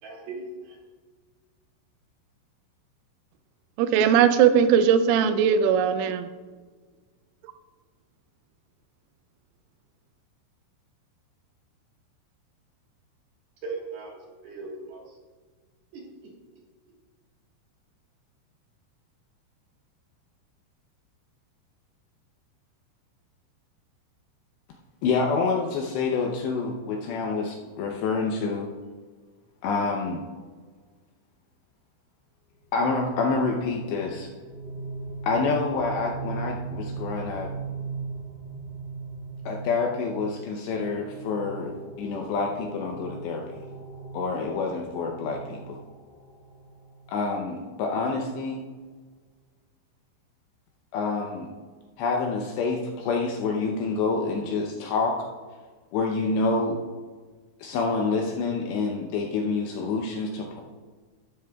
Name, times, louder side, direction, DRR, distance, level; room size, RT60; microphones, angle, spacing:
voice 1, 0.0-0.8 13.6-15.2 15.9-16.1, right 3 dB, 60° right, -2 dB, 2.9 m, -38 dB
voice 2, 3.8-6.3 7.4-7.5, right 8 dB, 85° right, 10 dB, 3.1 m, -19 dB
voice 3, 25.0-28.7 29.6-30.2 32.7-34.3 35.2-37.5 39.5-43.6 44.1-45.8 47.1-48.6 50.9-51.5 52.0-55.2 55.9-56.8 57.6-60.6, left 4 dB, 80° left, 1 dB, 2.6 m, -27 dB
sound 1, 32.6-47.3, right 4 dB, 25° left, 2.3 m, -39 dB
13.0 x 11.5 x 2.3 m, 1.4 s
omnidirectional pair, 5.7 m